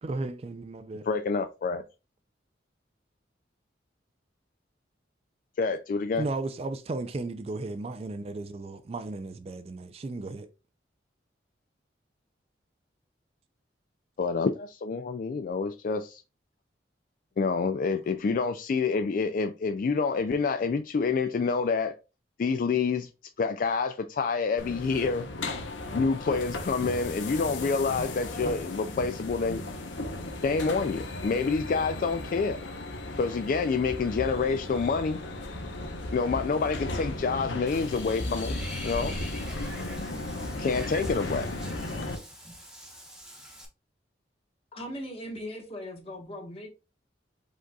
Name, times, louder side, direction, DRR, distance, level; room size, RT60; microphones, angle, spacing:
voice 1, 0.0-1.1 6.2-10.5, right 2 dB, 35° right, 0.3 m, -35 dB
voice 2, 1.0-1.8 5.6-6.3 14.2-16.2 17.4-22.0 22.4-23.1 23.4-25.3 25.9-29.6 30.4-32.6 33.2-35.2 36.1-39.2 40.6-41.5, left 4 dB, 45° left, 0.3 m, -27 dB
sound 1, 24.6-42.2, left 2 dB, 85° left, 0.9 m, -36 dB
Water / Bathtub (filling or washing), 37.7-43.7, equal, 5° right, 1.0 m, -45 dB
voice 3, 44.7-46.7, equal, 30° left, 1.4 m, -39 dB
5.0 x 3.9 x 2.3 m
head